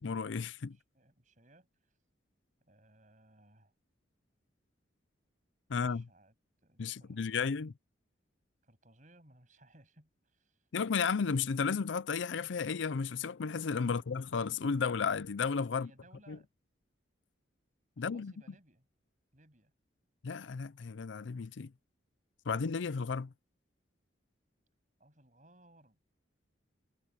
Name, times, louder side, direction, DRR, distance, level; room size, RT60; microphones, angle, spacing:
voice 1, 0.0-0.8 5.7-6.1 6.8-7.7 10.7-15.9 16.3-16.4 18.0-18.3 20.2-21.7 22.5-23.3, left 5 dB, 75° left, 0.5 m, -33 dB
voice 2, 0.7-2.0 2.6-3.7 5.7-6.3 6.6-7.5 8.6-10.7 13.9-14.4 15.7-16.5 18.0-18.9 19.3-19.7 25.0-26.0, right 1 dB, 40° right, 7.5 m, -63 dB
head